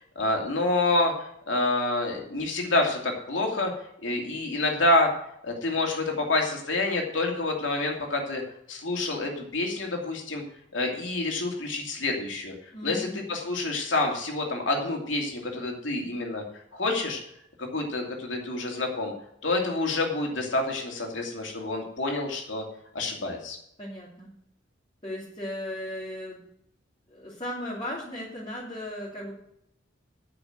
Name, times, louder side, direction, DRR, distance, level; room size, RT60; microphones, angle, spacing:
voice 1, 0.2-3.7 4.0-5.1 5.4-8.4 8.7-10.4 10.7-12.5 12.8-16.4 16.7-17.2 17.6-19.1 19.4-22.6 22.9-23.6, left 2 dB, 75° left, 1 dB, 2.7 m, -27 dB
voice 2, 12.7-13.2 23.8-24.3 25.0-26.4 27.1-29.3, left 1 dB, 30° left, -6 dB, 2.8 m, -36 dB
9.7 x 6.9 x 7.9 m, 0.74 s
head